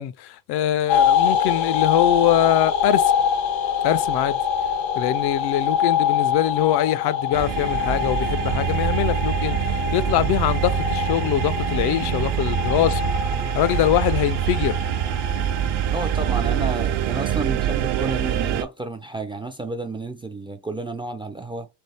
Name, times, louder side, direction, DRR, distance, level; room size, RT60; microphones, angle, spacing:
voice 1, 0.0-3.1 3.8-4.4 4.9-13.1 13.5-14.8, left 12 dB, 65° left, 0.5 m, -23 dB
sound 1, 0.9-16.3, left 8 dB, 85° left, 1.4 m, -25 dB
sound 2, 7.3-18.6, right 11 dB, 65° right, 0.8 m, -25 dB
voice 2, 15.9-21.7, right 2 dB, 15° right, 0.3 m, -31 dB
3.6 x 3.4 x 4.2 m
cardioid pair, 125°, 44 cm